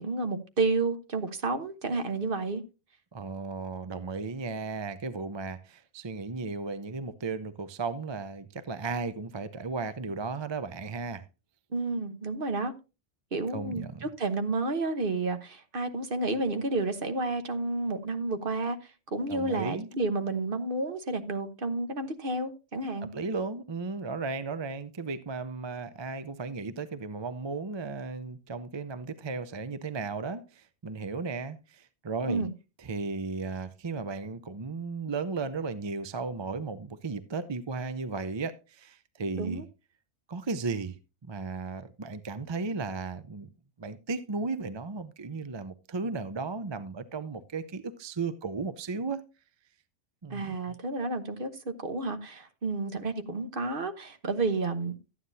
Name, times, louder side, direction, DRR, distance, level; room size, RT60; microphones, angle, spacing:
voice 1, 0.0-2.6 11.7-12.7 13.3-18.8 19.1-23.1 32.3-32.5 39.3-39.6 50.3-54.9, right 3 dB, 50° right, 1.3 m, -31 dB
voice 2, 3.1-11.2 13.5-14.1 19.3-19.9 23.1-32.4 32.8-39.7 40.3-43.5 43.8-49.2 50.2-50.6, right 4 dB, 30° right, 0.5 m, -35 dB
13.0 x 9.5 x 2.7 m
omnidirectional pair, 1.2 m